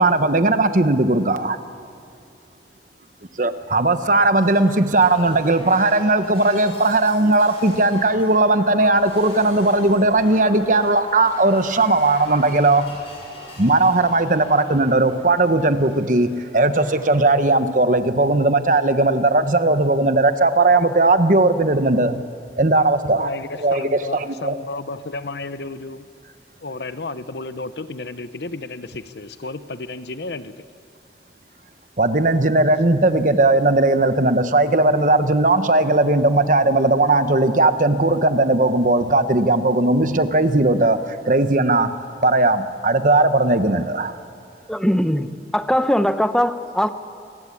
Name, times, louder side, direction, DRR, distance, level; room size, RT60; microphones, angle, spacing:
voice 1, 0.0-1.6 3.4-13.0 13.6-22.2 22.6-23.3 23.6-24.6 32.0-41.0 41.3-42.0 42.2-44.2, right 2 dB, 45° right, 1.2 m, -18 dB
Shatter, 4.3-16.4 16.7-17.3 18.3-18.5, left 1 dB, 35° left, 7.1 m, -43 dB
voice 2, 23.2-26.0 26.6-30.7, left 3 dB, 70° left, 0.9 m, -32 dB
voice 3, 44.7-45.3 45.5-46.9, equal, 5° left, 0.8 m, -20 dB
28.5 x 20.0 x 8.6 m
head